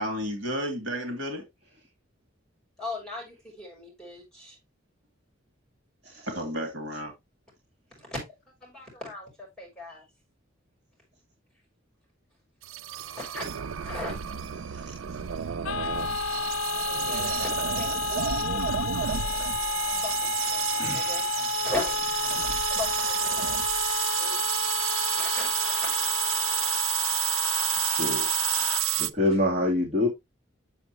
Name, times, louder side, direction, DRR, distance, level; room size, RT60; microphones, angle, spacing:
voice 1, 0.0-1.4 6.3-7.1, equal, 70° right, 2.7 m, -32 dB
voice 2, 2.8-4.6 8.0-8.2 8.6-10.1 13.1-13.5 13.8-14.1 15.1-15.5 15.8-15.9 16.7-17.5 17.8-18.7 20.0-21.3 21.6-22.0 22.8-23.5 24.2-24.7 25.0-25.9, left 2 dB, 5° left, 5.8 m, -38 dB
sound 1, 12.6-29.1, right 11 dB, 90° right, 0.5 m, -30 dB
voice 3, 14.6-14.9 20.8-21.4 23.9-24.0 27.8-28.2 28.5-30.1, left 1 dB, 35° right, 2.3 m, -28 dB
sound 2, 15.6-28.8, left 6 dB, 85° left, 0.4 m, -31 dB
7.9 x 7.0 x 2.9 m
head